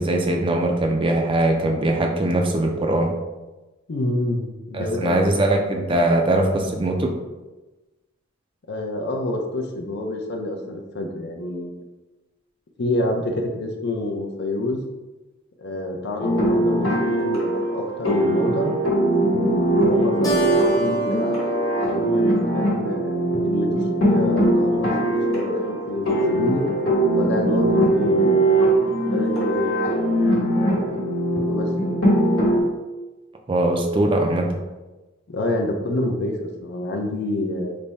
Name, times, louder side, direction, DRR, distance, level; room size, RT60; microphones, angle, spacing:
voice 1, 0.0-3.1 4.7-7.2 33.5-34.5, right 1 dB, 25° right, 2 dB, 0.4 m, -21 dB
voice 2, 3.9-5.2 8.7-11.8 12.8-14.8 15.6-18.7 19.7-21.4 21.8-26.7 27.1-29.8 30.5-31.0 31.4-32.0 35.3-37.8, left 1 dB, 55° left, 3 dB, 0.5 m, -28 dB
sound 1, 16.2-32.6, right 1 dB, 85° left, 1.2 m, -21 dB
Keyboard (musical), 20.2-23.1, right 1 dB, 20° left, 0.9 m, -29 dB
3.4 x 2.1 x 3.9 m, 1.1 s
head